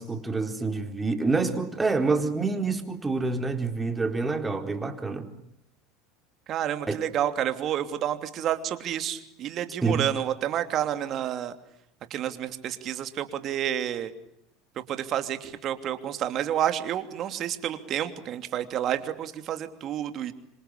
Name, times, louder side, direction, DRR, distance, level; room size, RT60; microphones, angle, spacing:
voice 1, 0.0-5.3 6.9-7.0 9.8-10.1, right 3 dB, 15° right, 6 dB, 4.3 m, -27 dB
voice 2, 6.5-11.5 12.1-14.1 14.9-20.3, right 10 dB, 50° right, 9 dB, 3.0 m, -29 dB
26.5 x 26.5 x 8.5 m, 0.78 s
hypercardioid pair, 85°, 0 cm